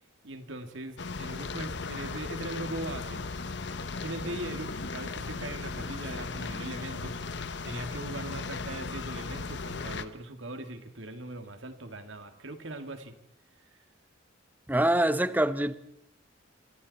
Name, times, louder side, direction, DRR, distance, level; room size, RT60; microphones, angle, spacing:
voice 1, 0.2-3.2 4.0-13.2, right 2 dB, 70° right, 2.3 m, -40 dB
sound 1, 1.0-10.1, left 4 dB, 60° left, 1.1 m, -37 dB
voice 2, 14.7-15.7, right 1 dB, 10° right, 0.8 m, -24 dB
27.5 x 25.0 x 4.2 m
head